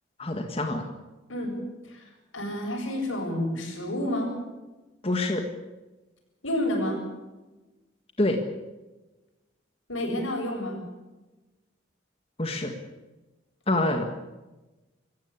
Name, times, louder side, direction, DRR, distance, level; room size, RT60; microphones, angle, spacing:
voice 1, 0.2-0.8 5.0-5.4 8.2-8.4 12.4-12.7 13.7-14.1, left 2 dB, 30° left, 4 dB, 1.8 m, -26 dB
voice 2, 2.3-4.3 6.4-7.0 9.9-10.8, left 1 dB, 90° left, 3 dB, 7.7 m, -29 dB
25.5 x 15.0 x 8.5 m, 1.1 s
head